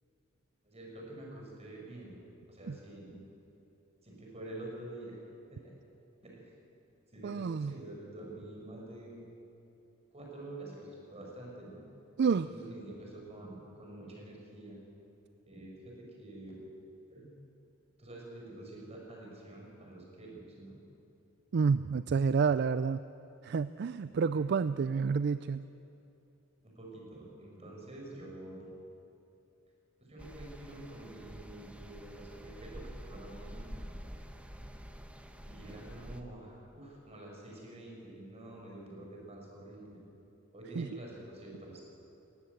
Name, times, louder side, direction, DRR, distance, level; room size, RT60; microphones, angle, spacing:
voice 1, 0.6-2.2 2.5-3.2 4.0-5.2 5.5-5.7 6.2-6.5 7.1-9.2 10.1-11.8 12.4-14.8 15.5-16.6 17.1-17.3 18.0-20.8 24.3-24.5 26.6-28.7 30.0-33.9 35.4-40.0 40.5-41.8, right 1 dB, 30° right, -2 dB, 5.3 m, -47 dB
voice 2, 7.2-7.8 12.2-12.5 21.5-23.0 23.4-25.7 40.8-40.9, right 5 dB, 50° right, 14 dB, 0.4 m, -29 dB
sound 1, 30.2-36.2, equal, 5° right, 1.0 m, -47 dB
18.5 x 17.5 x 8.1 m, 2.8 s
head